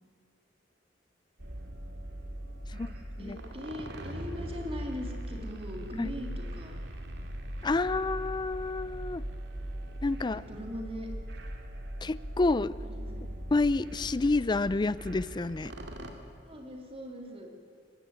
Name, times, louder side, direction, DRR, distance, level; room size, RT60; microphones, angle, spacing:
sound 1, 1.4-16.1, right 1 dB, 70° right, 2.2 m, -40 dB
voice 1, 2.7-6.8 10.3-11.1 12.8-13.3 16.4-17.5, left 1 dB, 30° right, 2 dB, 2.8 m, -41 dB
voice 2, 7.6-9.2 10.0-10.4 12.0-12.7 13.5-15.7, left 3 dB, 25° left, 18 dB, 0.4 m, -28 dB
20.0 x 16.0 x 9.4 m, 2.4 s
head